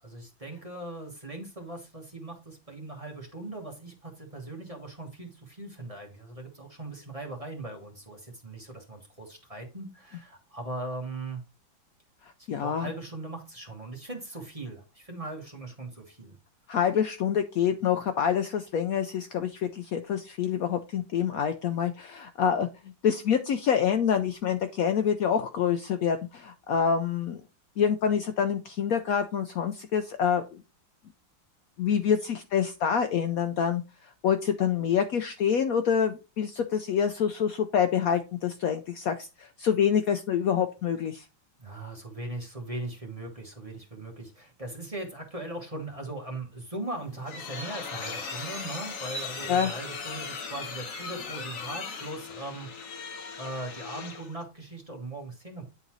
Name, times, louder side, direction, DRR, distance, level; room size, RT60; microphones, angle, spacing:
voice 1, 0.0-11.4 12.4-16.4 41.6-55.7, right 2 dB, 20° right, 1 dB, 1.1 m, -39 dB
voice 2, 12.5-12.9 16.7-22.7 23.0-27.4 27.8-30.6 31.8-33.8 34.2-41.2 49.5-49.7, left 8 dB, 90° left, 8 dB, 0.7 m, -26 dB
sound 1, 46.9-54.4, left 4 dB, 50° left, 1.2 m, -38 dB
9.6 x 3.9 x 3.0 m, 0.30 s
omnidirectional pair, 2.1 m